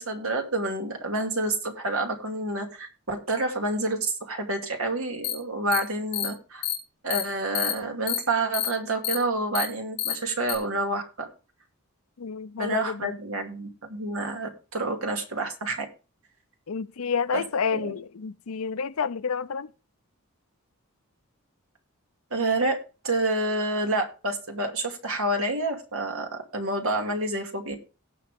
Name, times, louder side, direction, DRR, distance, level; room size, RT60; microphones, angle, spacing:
voice 1, 0.0-6.6 7.0-11.3 12.6-15.9 17.3-17.4 17.7-17.9 22.3-22.8 23.0-27.8, right 2 dB, 75° right, 2.4 m, -28 dB
sound 1, 5.2-5.3 5.7-5.8 6.1-6.3 6.6-6.7 7.1-7.2 7.5-7.7 8.1-8.2 8.5-8.7 9.0-9.1 9.5-9.6 10.0-10.1 10.5-10.6, left 11 dB, 45° left, 2.4 m, -27 dB
voice 2, 12.2-13.2 16.7-19.7, left 6 dB, 80° left, 0.5 m, -29 dB
17.5 x 5.9 x 3.6 m
head